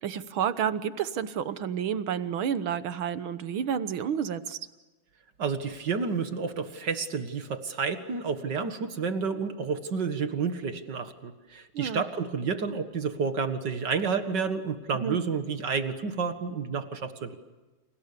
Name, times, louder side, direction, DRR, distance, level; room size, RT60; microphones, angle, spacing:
voice 1, 0.0-4.6 11.7-12.0 15.0-15.2, right 8 dB, 75° right, 12 dB, 1.9 m, -30 dB
voice 2, 5.4-17.4, right 5 dB, 55° right, 8 dB, 2.3 m, -30 dB
30.0 x 28.0 x 6.8 m, 1.1 s
omnidirectional pair, 2.3 m